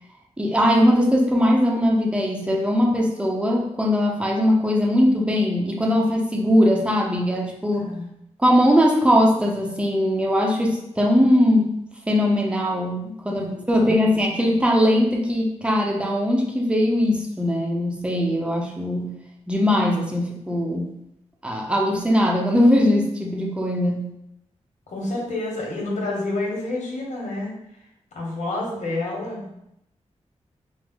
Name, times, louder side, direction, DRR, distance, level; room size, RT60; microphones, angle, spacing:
voice 1, 0.4-7.9 8.4-11.8 12.1-19.1 19.5-20.9 21.4-24.0, equal, 10° right, -1 dB, 0.7 m, -20 dB
voice 2, 7.7-8.1 13.4-14.0 24.9-27.5 28.1-29.5, left 2 dB, 85° left, -2 dB, 1.1 m, -29 dB
4.8 x 2.0 x 3.5 m, 0.81 s
wide cardioid pair, 90°, 12 cm